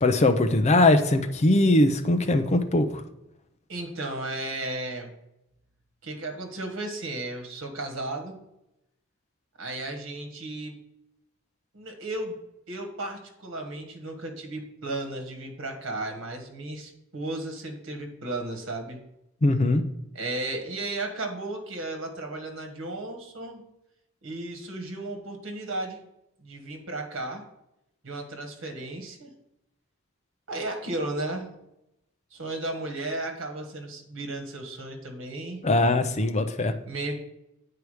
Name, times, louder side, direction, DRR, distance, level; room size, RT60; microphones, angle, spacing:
voice 1, 0.0-2.9 19.4-19.8 35.6-36.7, left 2 dB, 35° left, 8 dB, 0.6 m, -21 dB
voice 2, 3.7-5.1 6.0-8.4 9.6-10.7 11.7-12.4 12.7-19.0 20.1-23.6 24.2-26.0 26.4-27.4 28.0-29.3 30.5-31.5 32.3-35.6 36.8-37.2, right 2 dB, 65° right, 4 dB, 1.4 m, -34 dB
8.3 x 4.7 x 4.9 m, 0.86 s
head